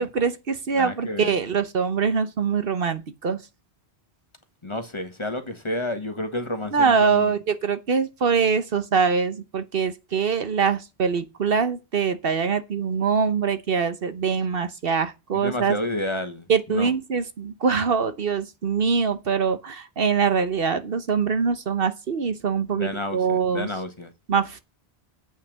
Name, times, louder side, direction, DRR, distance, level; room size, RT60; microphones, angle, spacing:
voice 1, 0.0-3.4 6.7-15.8 16.5-23.7 24.3-24.6, right 6 dB, 60° right, 1.1 m, -23 dB
voice 2, 0.8-1.3 4.6-7.3 15.3-16.9 22.7-24.1, left 1 dB, 25° left, 1.5 m, -30 dB
8.6 x 5.7 x 7.5 m
omnidirectional pair, 1.1 m